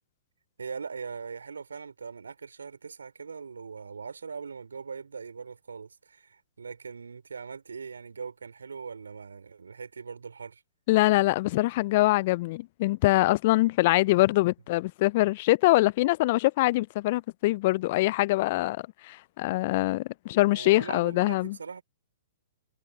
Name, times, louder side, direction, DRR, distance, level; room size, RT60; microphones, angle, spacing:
voice 1, 0.6-10.6 20.4-21.8, right 5 dB, 75° right, 3.4 m, -41 dB
voice 2, 10.9-21.6, left 19 dB, 45° left, 0.4 m, -24 dB
figure-of-eight pair, 115°, 0 cm